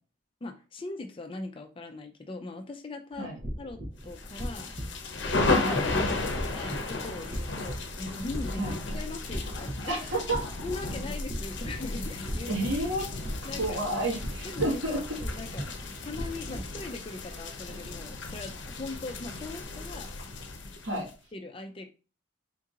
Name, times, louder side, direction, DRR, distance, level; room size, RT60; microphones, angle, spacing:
voice 1, 0.4-3.3 3.6-4.7 5.2-5.5 6.1-10.1 10.6-12.5 13.4-13.8 14.4-14.6 15.2-15.7 16.0-20.3 20.9-21.0 21.3-21.9, left 3 dB, 25° left, 5 dB, 0.4 m, -40 dB
sound 1, 3.4-17.0, equal, 30° right, 0.8 m, -39 dB
sound 2, 4.2-21.1, left 3 dB, 60° left, 0.7 m, -34 dB
voice 2, 9.8-10.4 12.5-13.0 13.6-15.0 20.8-21.1, right 1 dB, 65° right, -3 dB, 1.7 m, -30 dB
3.7 x 2.8 x 3.7 m, 0.35 s
head